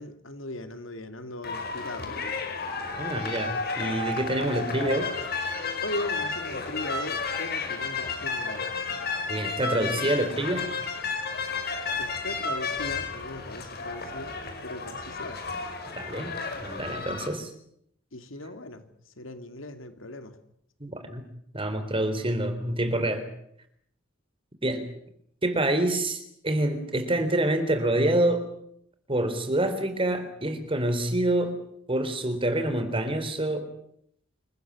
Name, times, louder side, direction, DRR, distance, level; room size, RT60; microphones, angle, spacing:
voice 1, 0.0-2.4 5.8-8.7 12.0-15.4 18.1-18.8 19.2-20.4, left 1 dB, 80° left, 9 dB, 2.8 m, -38 dB
sound 1, 1.4-17.3, left 4 dB, 50° left, 5.3 m, -32 dB
voice 2, 2.9-5.1 9.3-10.7 16.0-16.3 16.6-17.5 20.8-21.2 21.5-23.2 24.6-24.8 25.4-28.4 29.1-31.6 31.9-33.6, right 1 dB, 25° right, 9 dB, 3.6 m, -27 dB
27.0 x 15.5 x 9.7 m, 0.72 s
head